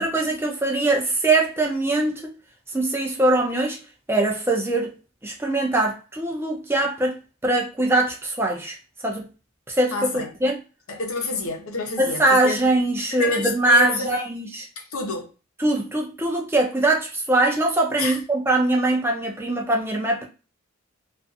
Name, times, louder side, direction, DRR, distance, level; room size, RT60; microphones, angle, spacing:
voice 1, 0.0-2.3 2.7-3.8 4.1-4.9 5.2-8.8 9.0-9.2 9.7-10.6 12.0-14.6 15.6-20.3, right 2 dB, 10° right, 0.5 m, -22 dB
voice 2, 9.9-10.3 10.9-12.6 13.1-14.2 14.8-15.3 18.0-18.2, left 2 dB, 90° left, 0.8 m, -29 dB
2.5 x 2.4 x 2.5 m
head